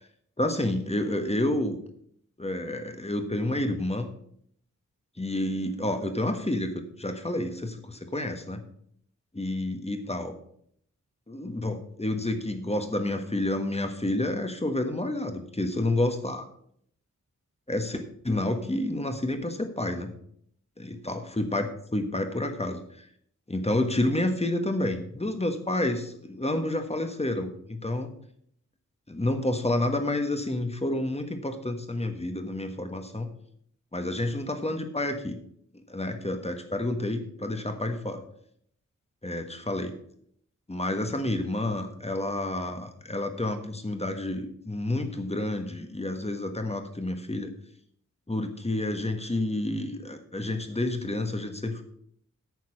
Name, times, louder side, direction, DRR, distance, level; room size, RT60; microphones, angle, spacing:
voice 1, 0.4-1.8 2.4-4.1 5.2-8.6 9.3-10.3 11.3-16.4 17.7-20.1 20.8-22.8 23.5-28.1 29.1-33.3 33.9-35.4 35.9-38.2 39.2-40.0 40.7-47.5 48.3-51.8, left 1 dB, 20° left, 7 dB, 1.3 m, -29 dB
9.4 x 6.5 x 6.4 m, 0.66 s
wide cardioid pair, 100°, 32 cm